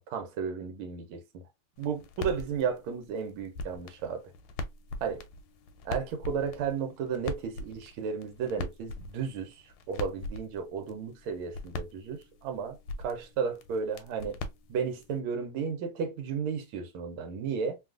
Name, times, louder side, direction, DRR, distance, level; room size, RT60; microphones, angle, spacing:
voice 1, 0.0-1.4 1.8-4.2 5.0-5.2 5.8-12.8 13.0-14.4 14.7-17.8, right 6 dB, 80° right, 1.5 m, -33 dB
sound 1, 1.8-15.2, left 2 dB, 80° left, 1.4 m, -42 dB
3.4 x 2.3 x 2.3 m
omnidirectional pair, 2.3 m